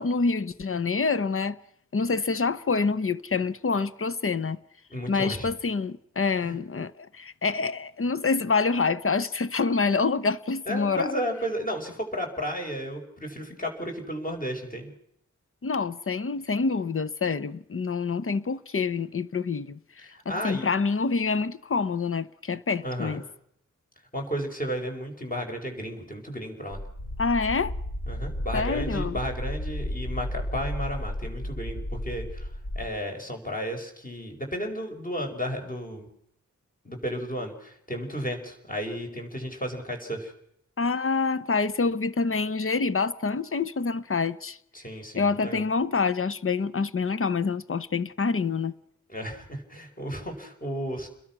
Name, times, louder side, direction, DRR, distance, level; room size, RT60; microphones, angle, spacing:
voice 1, 0.0-1.6 1.9-4.6 5.1-11.1 15.6-23.2 27.2-27.7 28.5-29.1 40.8-44.6 45.1-48.7, left 4 dB, 45° left, 0.9 m, -27 dB
voice 2, 4.9-5.5 6.4-6.5 10.7-14.9 20.0-20.7 22.8-23.2 24.1-26.8 28.1-36.1 36.8-40.3 44.7-45.6 49.1-51.1, equal, 30° left, 5.8 m, -33 dB
sound 1, 26.7-32.8, equal, 65° left, 5.0 m, -33 dB
30.0 x 21.5 x 6.2 m
wide cardioid pair, 105°, 30 cm